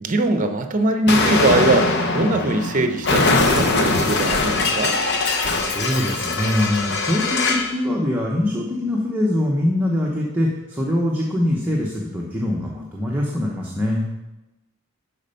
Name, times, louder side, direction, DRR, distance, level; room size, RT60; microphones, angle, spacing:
voice 1, 0.0-5.0, right 2 dB, 35° right, 7 dB, 0.8 m, -21 dB
Explosion, 1.1-7.7, left 3 dB, 50° left, 1.0 m, -21 dB
voice 2, 5.5-14.1, left 1 dB, 10° right, -3 dB, 0.9 m, -23 dB
10.5 x 4.4 x 5.6 m, 1.0 s
head